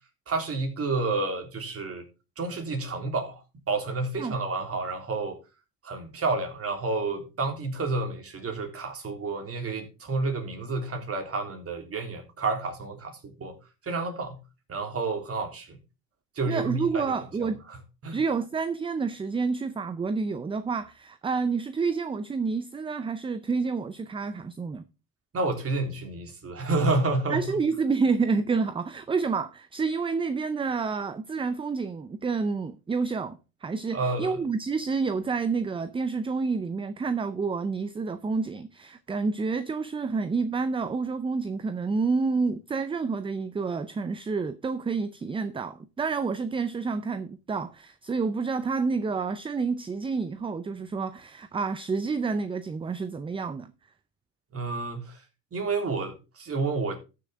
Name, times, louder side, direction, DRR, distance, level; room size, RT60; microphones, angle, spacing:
voice 1, 0.3-2.1 2.4-3.4 3.7-5.4 5.8-13.6 13.8-14.4 14.7-15.8 16.4-17.8 18.0-18.2 25.3-27.4 33.9-34.4 54.5-55.2 55.5-57.0, right 3 dB, 30° right, 3.7 m, -30 dB
voice 2, 16.5-17.6 18.1-24.9 27.3-53.7, right 4 dB, 10° right, 0.5 m, -29 dB
13.5 x 6.8 x 3.6 m
supercardioid pair, 100°, 47 cm